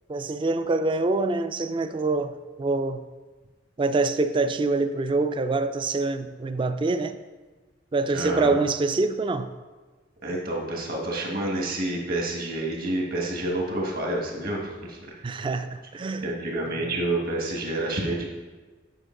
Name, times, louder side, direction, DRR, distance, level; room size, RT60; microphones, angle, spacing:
voice 1, 0.1-3.0 3.8-7.2 7.9-9.5 15.2-16.3, right 3 dB, 25° right, 10 dB, 0.3 m, -25 dB
voice 2, 8.1-8.5 10.2-15.1 16.2-18.2, right 1 dB, 55° right, 0 dB, 1.5 m, -28 dB
8.0 x 5.1 x 3.8 m, 1.3 s
head